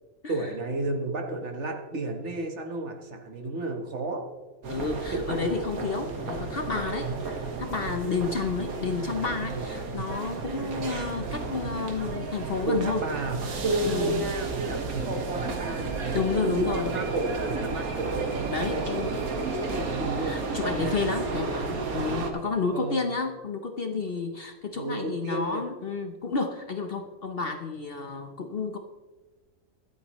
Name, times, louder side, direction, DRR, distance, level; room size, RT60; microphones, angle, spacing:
voice 1, 0.3-4.2 5.1-5.2 12.6-13.4 13.6-18.3 18.7-20.4 22.7-23.1 24.7-25.6, right 2 dB, 50° right, 3 dB, 1.6 m, -32 dB
sound 1, 4.6-22.3, right 4 dB, 80° right, 1.8 m, -32 dB
voice 2, 4.7-13.0 13.8-14.2 16.1-17.0 18.5-19.2 20.2-28.8, left 4 dB, 50° left, 5 dB, 0.9 m, -31 dB
23.5 x 8.4 x 3.1 m, 1.3 s
omnidirectional pair, 1.5 m